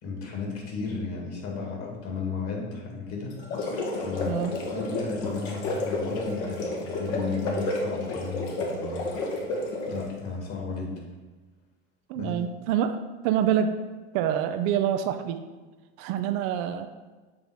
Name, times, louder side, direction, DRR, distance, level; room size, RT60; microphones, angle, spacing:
voice 1, 0.0-3.4 4.0-9.1 9.9-10.9 12.1-12.3, left 4 dB, 45° left, 0 dB, 2.2 m, -34 dB
sound 1, 3.3-10.1, left 2 dB, 60° left, 1.5 m, -31 dB
voice 2, 12.1-13.0 13.2-13.7 14.1-15.4 16.0-16.9, right 9 dB, 55° right, 9 dB, 0.6 m, -26 dB
7.3 x 3.8 x 4.8 m, 1.3 s
hypercardioid pair, 95°, 33 cm